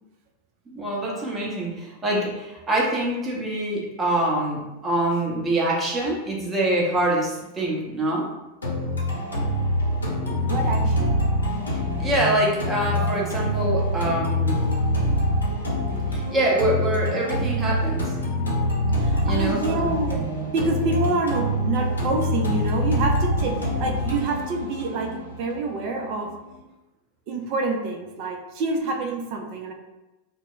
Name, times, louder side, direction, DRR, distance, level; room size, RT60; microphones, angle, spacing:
voice 1, 0.7-8.3 12.0-14.7 16.1-18.1 19.2-19.9, right 1 dB, 15° right, -3 dB, 0.8 m, -25 dB
sound 1, 8.6-26.6, equal, 75° left, 0.7 m, -25 dB
voice 2, 10.2-11.6 19.0-20.2 20.5-26.4 27.3-29.7, right 3 dB, 45° right, 3 dB, 0.4 m, -27 dB
2.2 x 2.0 x 3.7 m, 1.0 s
figure-of-eight pair, 90°, 0 cm